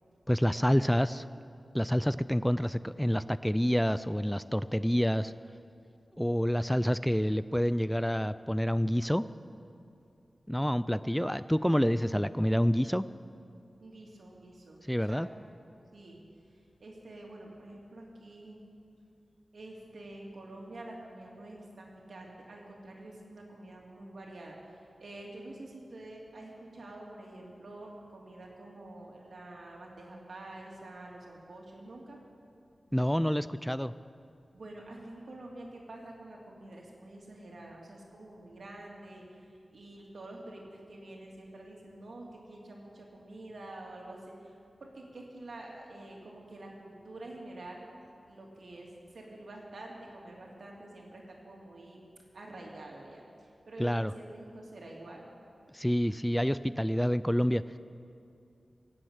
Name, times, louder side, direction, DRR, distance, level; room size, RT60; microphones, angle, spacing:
voice 1, 0.3-1.3 1.7-5.3 6.2-9.3 10.5-13.1 14.9-15.3 32.9-33.9 53.8-54.1 55.7-57.6, equal, 5° left, 15 dB, 0.3 m, -28 dB
voice 2, 13.8-15.5 15.9-16.2 16.8-18.6 19.5-32.2 34.5-52.0 52.3-55.3, right 1 dB, 80° right, -1 dB, 2.7 m, -47 dB
17.5 x 7.7 x 8.8 m, 2.6 s
wide cardioid pair, 80°, 0 cm